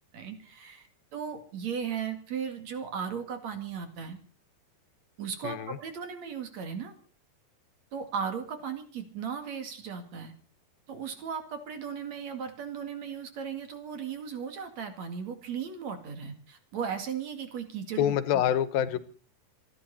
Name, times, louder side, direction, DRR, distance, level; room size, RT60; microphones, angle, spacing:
voice 1, 0.1-0.9 1.1-4.2 5.2-6.9 7.9-10.3 10.9-18.1 18.8-18.9, right 7 dB, 55° right, 7 dB, 3.2 m, -36 dB
voice 2, 5.4-5.8 18.0-19.0, left 10 dB, 90° left, 14 dB, 2.8 m, -26 dB
27.5 x 11.0 x 4.3 m, 0.40 s
omnidirectional pair, 4.1 m